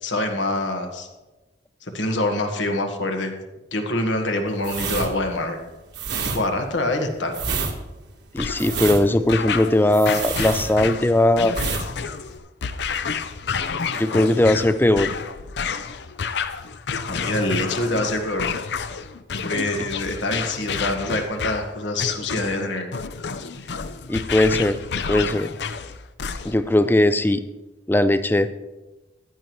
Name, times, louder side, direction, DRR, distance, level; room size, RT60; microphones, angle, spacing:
voice 1, 0.0-1.1 1.8-3.3 3.7-5.6 6.2-7.4 17.1-18.5 19.4-22.9, left 1 dB, 85° left, 4 dB, 1.5 m, -25 dB
sound 1, 4.6-11.2 11.5-11.9 12.1-12.4, right 4 dB, 70° right, 1.4 m, -28 dB
voice 2, 8.3-11.6 14.0-15.1 24.1-24.8 25.1-25.5 26.4-27.4 27.9-28.5, left 1 dB, 10° left, 12 dB, 0.4 m, -19 dB
sound 2, 8.4-26.7, left 5 dB, 70° left, 0.5 m, -30 dB
14.5 x 10.5 x 3.1 m, 1.1 s
head